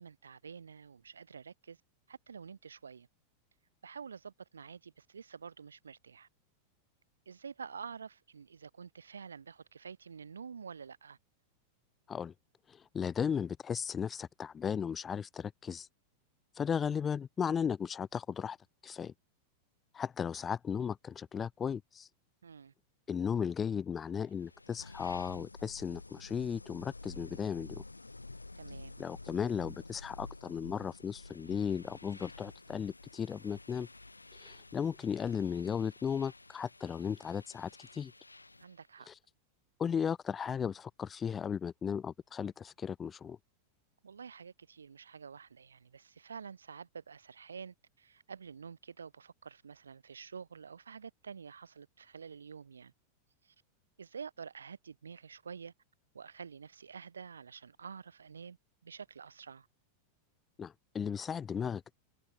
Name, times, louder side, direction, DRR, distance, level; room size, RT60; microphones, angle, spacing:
voice 1, 0.0-1.8 2.1-3.1 3.8-6.3 7.2-11.2 22.4-22.7 28.5-29.0 38.6-39.1 44.0-52.9 53.4-53.5 54.0-55.7 56.1-58.6 58.8-59.7, right 6 dB, 70° right, 6.8 m, -48 dB
voice 2, 12.7-15.9 16.6-18.6 18.8-19.1 19.9-22.1 23.1-27.8 29.0-33.9 34.4-38.1 39.1-39.2 39.8-43.4 60.6-61.9, left 7 dB, 20° left, 0.9 m, -36 dB
sound 1, 24.2-38.8, left 2 dB, 80° left, 3.3 m, -50 dB
figure-of-eight pair, 90°, 0 cm